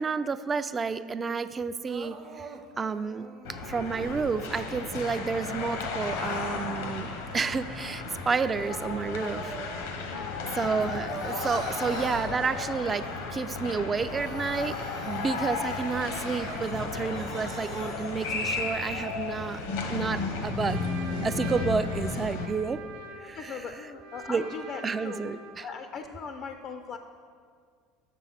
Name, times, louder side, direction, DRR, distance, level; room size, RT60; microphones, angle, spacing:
voice 1, 0.0-2.5 2.8-7.1 7.3-9.6 10.6-13.1 13.3-14.7 15.0-19.6 19.9-20.8 21.2-22.8 23.2-23.4 24.3-24.4 24.8-25.7, right 5 dB, 30° right, 13 dB, 0.3 m, -30 dB
Crying sobbing, 1.9-4.3 4.9-6.7 7.2-10.1 10.4-13.1 13.5-13.6 13.9-18.7 19.2-19.3 19.9-20.0 20.7-21.6, right 5 dB, 55° right, 0.9 m, -45 dB
sound 1, 3.4-22.5, left 4 dB, 80° left, 0.8 m, -34 dB
voice 2, 10.0-10.6 23.3-25.3 25.6-27.0, left 5 dB, 50° left, 7 dB, 0.4 m, -39 dB
Trumpet, 20.0-25.7, right 2 dB, 80° right, 0.9 m, -45 dB
7.0 x 6.3 x 4.2 m, 2.1 s
hypercardioid pair, 75°, 0 cm